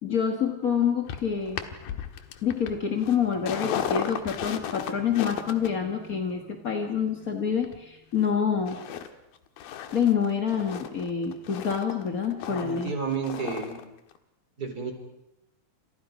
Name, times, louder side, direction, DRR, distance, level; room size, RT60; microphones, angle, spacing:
voice 1, 0.0-1.6 2.4-8.8 9.9-12.9, left 7 dB, 40° left, 3 dB, 1.2 m, -27 dB
sound 1, 1.1-8.3 8.7-9.1 9.3-13.8 14.1-14.2, left 9 dB, 85° left, 3.2 m, -36 dB
voice 2, 12.2-13.8 14.6-14.9, right 5 dB, 25° right, 5 dB, 3.9 m, -32 dB
30.0 x 27.5 x 5.2 m, 0.82 s
omnidirectional pair, 4.1 m